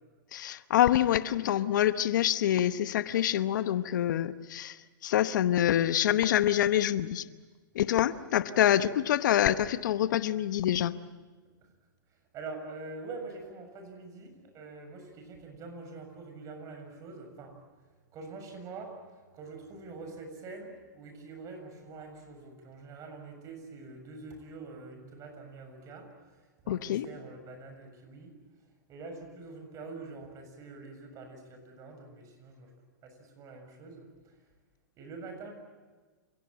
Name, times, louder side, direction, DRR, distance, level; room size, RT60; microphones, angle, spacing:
voice 1, 0.3-7.2 7.7-11.0 26.7-27.1, left 11 dB, 70° left, 13 dB, 0.9 m, -26 dB
voice 2, 12.3-17.5 18.1-28.3 28.9-32.7 33.0-34.4 35.0-35.5, right 3 dB, 30° right, 5 dB, 7.0 m, -45 dB
28.5 x 17.5 x 9.0 m, 1.4 s
hypercardioid pair, 125°, 11 cm